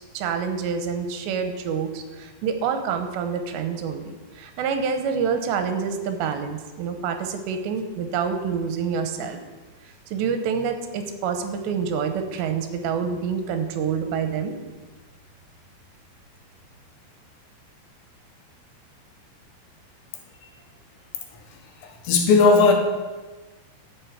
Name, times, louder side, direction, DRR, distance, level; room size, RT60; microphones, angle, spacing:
voice 1, 0.0-4.0 4.4-9.4 10.1-14.6, right 6 dB, 80° right, 7 dB, 3.2 m, -27 dB
voice 2, 21.8-22.7, left 4 dB, 80° left, 3 dB, 3.6 m, -17 dB
11.5 x 5.9 x 8.0 m, 1.3 s
omnidirectional pair, 5.0 m